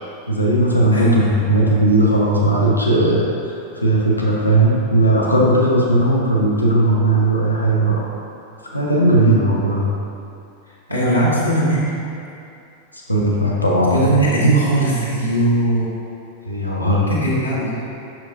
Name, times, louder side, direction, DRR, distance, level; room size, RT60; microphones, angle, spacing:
voice 1, 0.3-8.0 8.6-9.9 12.9-14.1 16.4-17.1, right 1 dB, 85° left, -4 dB, 0.8 m, -17 dB
voice 2, 0.9-1.3 9.1-9.5 10.9-11.9 13.9-15.9 17.1-17.8, right 1 dB, 90° right, -9 dB, 1.3 m, -19 dB
6.5 x 5.9 x 2.6 m, 2.6 s
figure-of-eight pair, 90°, 0 cm